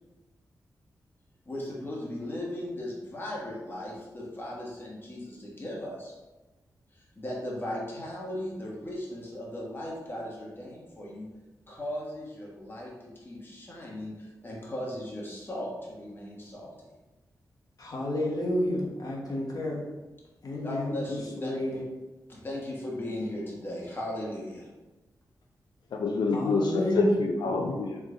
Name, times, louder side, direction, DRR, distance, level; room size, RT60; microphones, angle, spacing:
voice 1, 1.4-6.1 6.9-11.3 11.7-16.9 20.6-21.8 22.3-24.7, left 1 dB, 30° left, -4 dB, 1.3 m, -37 dB
voice 2, 17.8-19.8 20.4-21.8 26.3-27.2, left 1 dB, 55° left, -3 dB, 1.2 m, -30 dB
voice 3, 25.9-28.0, left 3 dB, 90° left, 1 dB, 0.4 m, -27 dB
3.6 x 3.5 x 3.7 m, 1.1 s
wide cardioid pair, 95°, 7 cm